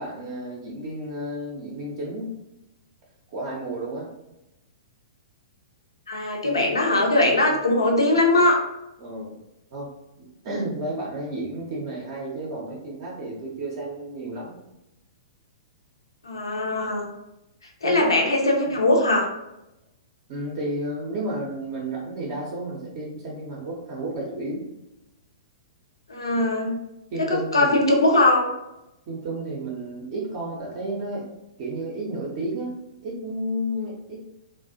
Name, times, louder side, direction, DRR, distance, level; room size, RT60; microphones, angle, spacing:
voice 1, 0.0-2.3 3.3-4.1 6.4-6.7 9.0-9.4 9.7-9.9 10.2-14.6 17.8-18.3 18.7-18.8 20.3-24.7 27.1-27.7 29.1-31.3 31.6-32.7 33.0-34.2, right 1 dB, 40° right, -4 dB, 0.5 m, -32 dB
voice 2, 6.1-8.6 16.2-17.1 17.8-19.3 26.1-26.8 27.2-28.5, left 2 dB, 70° left, 1 dB, 0.5 m, -20 dB
2.3 x 2.1 x 2.5 m, 0.90 s
figure-of-eight pair, 110°, 3 cm